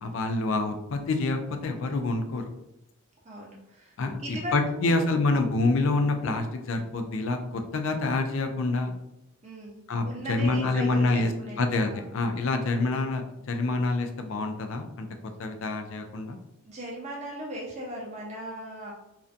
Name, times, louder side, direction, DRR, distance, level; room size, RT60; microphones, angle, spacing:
voice 1, 0.0-2.4 4.0-8.9 9.9-11.3 11.6-15.1 15.4-16.4, left 3 dB, 60° left, 5 dB, 0.3 m, -27 dB
voice 2, 3.2-4.9 9.4-12.1 16.6-18.9, equal, 30° right, -3 dB, 0.5 m, -38 dB
2.4 x 2.2 x 2.5 m, 0.85 s
head